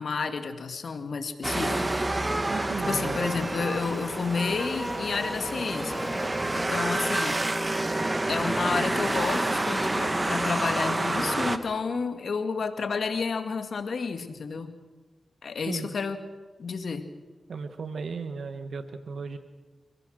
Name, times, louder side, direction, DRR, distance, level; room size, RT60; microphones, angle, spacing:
voice 1, 0.0-1.9 2.9-6.1 6.5-7.4 8.3-14.7 15.4-16.2 16.6-17.1, left 5 dB, 75° left, 8 dB, 2.0 m, -30 dB
sound 1, 1.4-11.6, right 2 dB, 30° right, 1.8 m, -28 dB
sound 2, 1.6-9.6, left 1 dB, 25° left, 5.7 m, -41 dB
voice 2, 2.5-3.2 15.7-15.9 17.5-19.4, right 4 dB, 80° right, 9 dB, 1.4 m, -35 dB
30.0 x 17.0 x 6.5 m, 1.3 s
cardioid pair, 40°, 0 cm